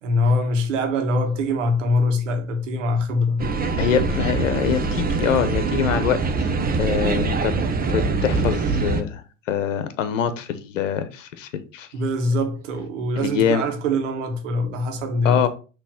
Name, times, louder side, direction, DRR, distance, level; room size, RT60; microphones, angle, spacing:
voice 1, 0.0-3.5 11.9-15.5, left 1 dB, 75° right, 1.5 m, -23 dB
sound 1, 3.4-9.0, right 3 dB, 25° right, 0.9 m, -23 dB
voice 2, 3.8-7.5 7.9-9.2 9.5-11.9 13.2-13.6 15.2-15.5, left 8 dB, 80° left, 1.0 m, -24 dB
6.2 x 3.2 x 5.7 m
hypercardioid pair, 80°, 38 cm